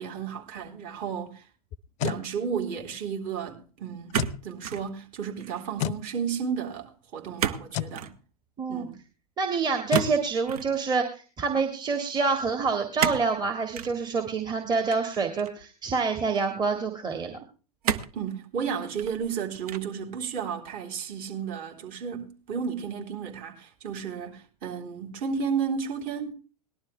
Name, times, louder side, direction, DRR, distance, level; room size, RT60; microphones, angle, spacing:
voice 1, 0.0-1.5 2.0-4.2 4.4-8.1 8.7-9.0 18.1-26.3, right 6 dB, 40° right, 3.7 m, -33 dB
sound 1, 1.7-2.2 4.1-4.4 5.8-6.0 7.7-8.0 9.9-10.1, left 14 dB, 35° left, 0.6 m, -30 dB
sound 2, 4.1-4.9 5.2-5.7 7.4-7.7 7.9-8.2 9.9-10.7 13.0-13.3 13.7-13.9 14.9-15.7 16.4-16.5 17.8-18.2 18.8-19.3 19.7-20.0, right 8 dB, 65° right, 1.2 m, -30 dB
voice 2, 8.6-8.9 9.4-17.4, right 4 dB, 20° right, 1.9 m, -27 dB
19.0 x 12.0 x 3.3 m
hypercardioid pair, 105°, 21 cm